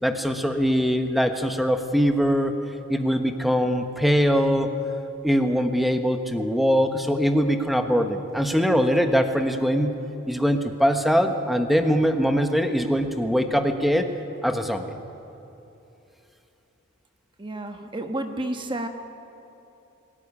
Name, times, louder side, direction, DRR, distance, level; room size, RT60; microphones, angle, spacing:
voice 1, 0.0-2.6 2.9-4.7 5.2-9.9 10.3-14.1 14.4-14.9, equal, ahead, 6 dB, 1.1 m, -22 dB
voice 2, 17.4-18.9, right 1 dB, 20° right, 5 dB, 1.2 m, -31 dB
23.0 x 14.0 x 9.8 m, 2.9 s
head